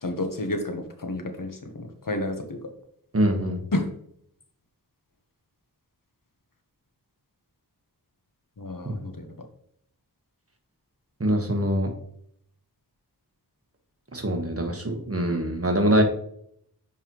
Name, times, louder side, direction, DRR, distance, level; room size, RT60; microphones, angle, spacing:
voice 1, 0.0-2.6 3.7-3.8 8.6-9.3, left 1 dB, 55° left, 5 dB, 1.2 m, -30 dB
voice 2, 3.1-3.6 8.8-9.0 11.2-11.9 14.1-16.0, right 1 dB, 35° right, 4 dB, 1.3 m, -24 dB
6.9 x 5.4 x 3.1 m, 0.67 s
wide cardioid pair, 50°, 39 cm